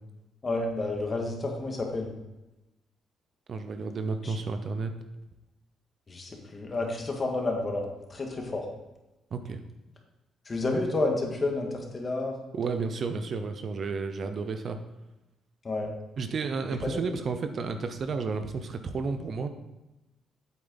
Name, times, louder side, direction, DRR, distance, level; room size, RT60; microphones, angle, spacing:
voice 1, 0.4-2.1 4.2-4.4 6.1-8.7 10.5-12.3 15.6-15.9 16.8-17.1, left 2 dB, 35° left, 1 dB, 2.0 m, -30 dB
voice 2, 3.5-4.9 9.3-9.6 12.5-14.8 16.2-19.5, right 4 dB, 50° right, 8 dB, 0.8 m, -32 dB
8.4 x 7.9 x 4.0 m, 1.0 s
cardioid pair, 90°, 0 cm